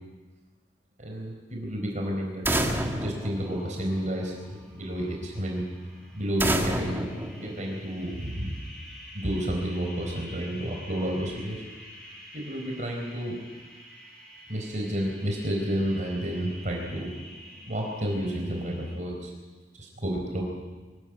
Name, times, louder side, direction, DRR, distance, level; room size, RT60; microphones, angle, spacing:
voice 1, 1.0-2.7 3.0-4.3 4.7-5.6 6.1-7.0 7.4-8.6 9.1-11.6 12.3-13.3 14.5-17.1 17.7-19.3 19.8-20.4, equal, 45° right, 1 dB, 4.5 m, -31 dB
sound 1, 2.4-4.2 6.4-8.2, right 1 dB, 15° right, 2.0 m, -29 dB
sound 2, 2.5-19.0, equal, 5° left, 7.8 m, -48 dB
24.5 x 16.0 x 8.8 m, 1.3 s
head